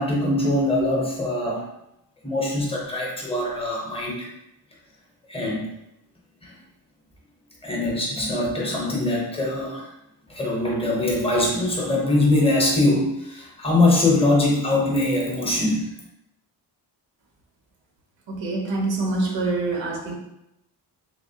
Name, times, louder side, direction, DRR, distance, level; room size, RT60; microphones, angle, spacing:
voice 1, 0.0-1.6 2.2-4.3 5.3-5.7 6.4-6.5 7.6-9.9 10.3-15.9, left 2 dB, 15° left, -3 dB, 0.7 m, -22 dB
voice 2, 18.3-20.1, right 2 dB, 85° right, -1 dB, 1.0 m, -25 dB
3.4 x 2.8 x 2.7 m, 0.86 s
wide cardioid pair, 155°, 43 cm